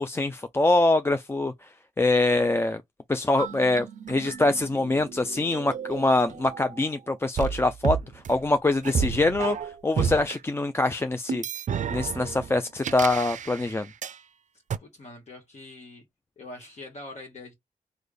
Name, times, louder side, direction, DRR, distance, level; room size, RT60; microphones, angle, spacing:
voice 1, 0.0-1.7 2.0-2.8 3.1-11.4 11.9-13.9, left 2 dB, 20° left, 0.3 m, -24 dB
sound 1, 3.4-6.9 7.4-10.4 11.3-14.2 14.7-14.8, right 7 dB, 65° right, 0.4 m, -32 dB
voice 2, 14.8-16.0 16.4-17.5, left 2 dB, 55° left, 1.1 m, -43 dB
3.3 x 2.1 x 3.7 m
wide cardioid pair, 85°, 14 cm